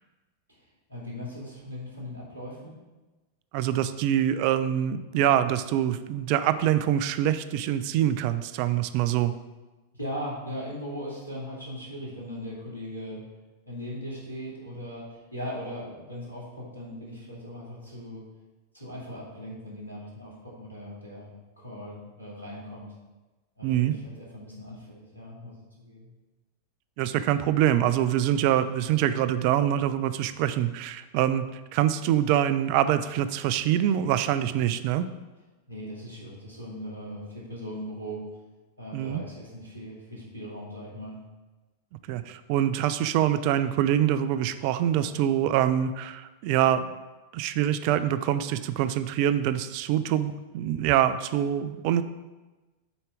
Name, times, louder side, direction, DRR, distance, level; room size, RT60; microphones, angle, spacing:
voice 1, 0.5-2.8 9.1-9.2 9.9-13.2 13.7-18.2 18.7-22.9 23.6-26.1 35.7-38.3 38.8-41.2, equal, 85° left, -5 dB, 2.2 m, -39 dB
voice 2, 3.5-9.3 23.6-23.9 27.0-31.4 31.7-35.1 38.9-39.2 42.1-46.9 47.3-52.0, right 11 dB, 45° right, 12 dB, 0.4 m, -25 dB
7.0 x 4.3 x 5.0 m, 1.2 s
figure-of-eight pair, 90°, 0 cm